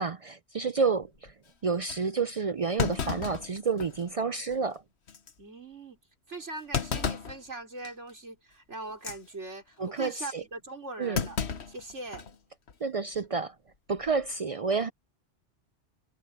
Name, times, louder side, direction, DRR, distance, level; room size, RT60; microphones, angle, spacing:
voice 1, 0.0-1.3 1.6-4.8 9.8-10.4 11.0-11.2 12.8-13.5 13.9-14.9, right 5 dB, 60° right, 0.3 m, -29 dB
Thump thud, 1.0-1.3 1.9-2.0 2.8-4.1 4.5-4.6 5.1-5.3 6.7-7.4 7.8-8.1 8.9-9.2 11.1-12.4 12.7-12.8 13.9-14.2, left 6 dB, 70° left, 1.4 m, -33 dB
voice 2, 5.4-6.0 6.3-11.4 11.7-12.3, right 2 dB, 85° right, 4.8 m, -41 dB
omnidirectional pair, 1.2 m